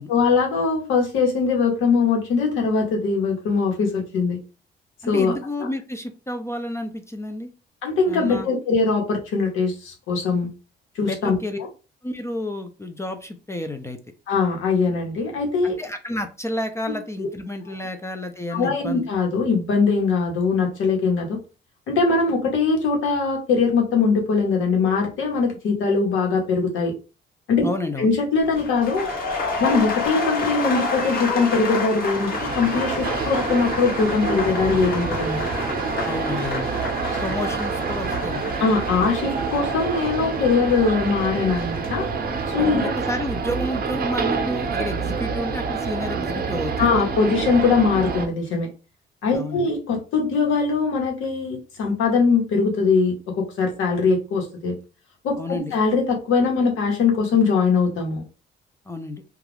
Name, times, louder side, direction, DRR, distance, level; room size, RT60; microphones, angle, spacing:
voice 1, 0.1-4.4 5.1-5.3 7.8-10.5 11.0-11.4 14.3-15.8 18.5-21.4 21.9-26.9 27.5-27.7 28.0-29.1 29.6-35.5 38.6-42.0 42.5-42.9 46.8-48.7 49.2-54.7 55.2-58.2, left 4 dB, 85° left, 1 dB, 1.0 m, -21 dB
voice 2, 5.0-7.5 8.1-8.5 11.0-11.7 12.0-14.0 15.6-19.1 27.6-28.1 36.1-36.7 37.2-38.5 42.6-47.0 49.3-49.7 55.4-55.7 58.9-59.2, left 1 dB, 15° left, 6 dB, 0.4 m, -30 dB
sound 1, 28.4-44.5 44.8-45.2, left 3 dB, 50° left, 1.0 m, -30 dB
sound 2, 32.1-48.3, right 5 dB, 50° right, 0.6 m, -27 dB
2.3 x 2.3 x 3.2 m, 0.32 s
cardioid pair, 90°, 20 cm